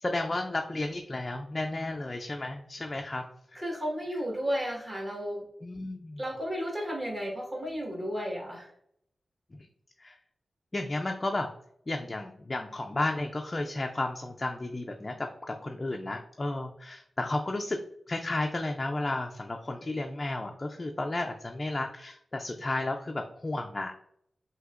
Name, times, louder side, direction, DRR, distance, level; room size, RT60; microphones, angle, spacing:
voice 1, 0.0-3.2 3.5-3.6 5.6-6.2 9.6-9.7 10.0-10.2 10.7-11.5 11.9-17.8 18.1-23.9, left 2 dB, 25° left, 3 dB, 0.3 m, -33 dB
voice 2, 3.5-5.4 6.2-8.7, equal, 25° right, -2 dB, 1.5 m, -33 dB
5.9 x 2.8 x 2.5 m, 0.71 s
wide cardioid pair, 125°, 0 cm